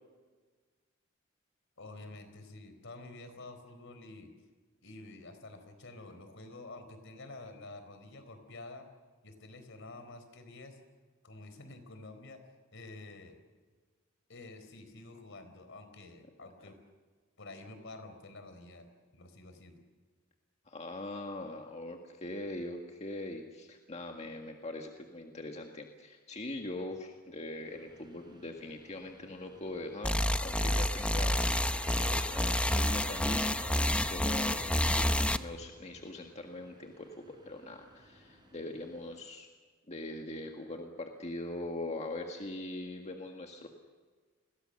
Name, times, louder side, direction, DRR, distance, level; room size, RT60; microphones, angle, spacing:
voice 1, 1.8-4.3 4.8-8.9 9.2-10.8 11.2-12.4 12.7-13.4 14.3-16.8 17.4-18.9 19.1-19.8, left 2 dB, 60° left, 8 dB, 4.2 m, -49 dB
voice 2, 20.7-30.1 30.4-39.5 39.9-43.7, left 2 dB, 30° left, 3 dB, 1.7 m, -42 dB
Subway metro underground, 27.7-39.2, right 1 dB, 20° right, 5.3 m, -53 dB
sound 1, 30.0-35.4, left 1 dB, 5° left, 0.8 m, -29 dB
30.0 x 22.0 x 6.5 m, 1.5 s
head